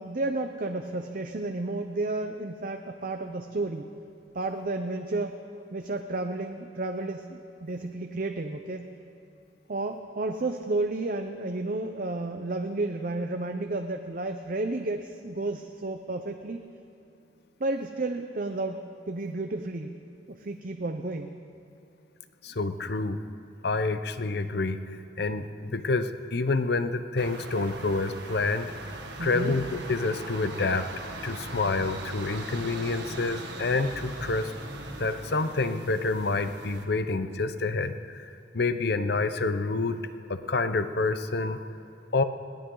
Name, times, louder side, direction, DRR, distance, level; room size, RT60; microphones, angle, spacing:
voice 1, 0.0-3.9 4.3-5.4 5.7-8.9 9.7-16.6 17.6-20.0 20.3-21.3 29.2-29.5, right 2 dB, 50° right, 6 dB, 0.7 m, -32 dB
voice 2, 22.4-23.2 23.6-24.8 25.2-28.7 29.2-30.9 31.2-34.5 35.0-38.2 38.5-40.0 40.3-41.6 42.1-42.2, left 3 dB, 60° left, 10 dB, 0.8 m, -28 dB
sound 1, 27.2-36.8, right 2 dB, 70° right, 1.6 m, -40 dB
21.0 x 17.5 x 3.9 m, 2.6 s
head